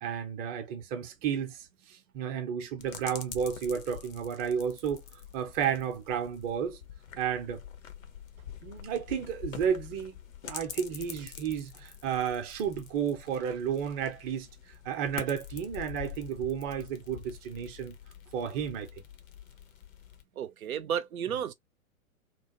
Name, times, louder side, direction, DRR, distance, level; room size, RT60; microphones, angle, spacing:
voice 1, 0.0-5.0 5.3-6.8 7.2-7.6 8.6-14.5 14.8-17.9 18.3-18.9, right 8 dB, 20° right, 0.6 m, -32 dB
sound 1, 2.8-20.2, left 8 dB, 70° left, 0.8 m, -46 dB
voice 2, 20.4-21.5, right 9 dB, 75° right, 0.6 m, -32 dB
3.0 x 2.1 x 2.8 m
figure-of-eight pair, 110°, 42 cm